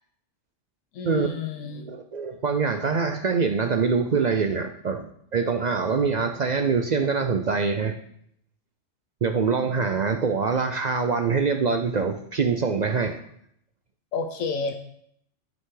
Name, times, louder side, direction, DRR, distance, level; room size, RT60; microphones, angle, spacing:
voice 1, 0.9-1.8 14.1-14.7, left 4 dB, 90° left, 6 dB, 1.1 m, -30 dB
voice 2, 1.6-5.1 5.3-8.0 9.2-13.2, right 5 dB, 60° right, 6 dB, 0.4 m, -24 dB
11.5 x 5.5 x 3.8 m, 0.71 s
omnidirectional pair, 1.3 m